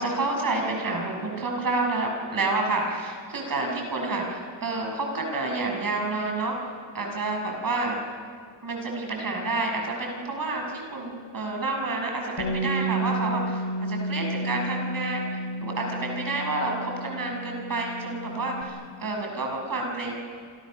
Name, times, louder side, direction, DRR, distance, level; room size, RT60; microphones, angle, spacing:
voice 1, 0.0-6.6 6.9-8.0 8.6-15.2 15.6-20.1, right 2 dB, 45° right, 1 dB, 6.5 m, -29 dB
Bass guitar, 12.4-18.6, right 2 dB, 55° left, 4.5 m, -31 dB
29.0 x 27.0 x 6.6 m, 2.1 s
wide cardioid pair, 140°, 47 cm